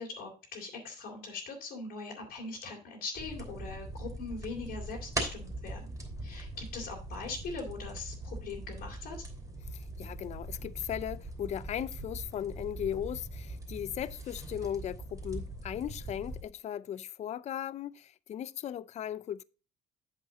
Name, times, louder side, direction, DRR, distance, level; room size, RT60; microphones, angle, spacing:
voice 1, 0.0-5.9 6.2-9.3, left 4 dB, 65° left, 2.8 m, -41 dB
sound 1, 3.2-16.4, right 1 dB, 15° right, 2.9 m, -41 dB
voice 2, 9.7-19.4, left 10 dB, 40° left, 0.4 m, -37 dB
8.0 x 7.0 x 3.8 m
cardioid pair, 110°, 17 cm